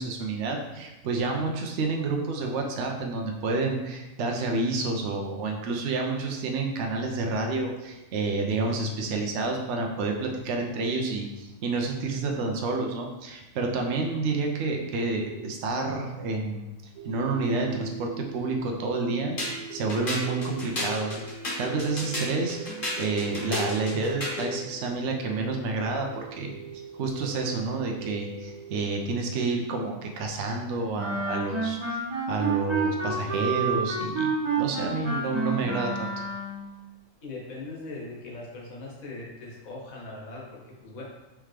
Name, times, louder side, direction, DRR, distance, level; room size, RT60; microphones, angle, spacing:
voice 1, 0.0-16.7 17.0-21.2 21.6-22.6 23.0-26.5 26.9-32.0 32.3-34.3 34.6-36.1, right 3 dB, 65° right, 2 dB, 0.9 m, -29 dB
sound 1, 17.0-29.0, right 5 dB, 80° right, 1.2 m, -43 dB
sound 2, 19.4-24.5, left 1 dB, 40° left, 1.4 m, -33 dB
Wind instrument woodwind instrument, 31.0-36.6, right 4 dB, 25° right, 1.1 m, -29 dB
voice 2, 37.2-41.0, left 2 dB, 80° left, -3 dB, 1.6 m, -40 dB
4.5 x 3.6 x 3.3 m, 1.0 s
omnidirectional pair, 1.4 m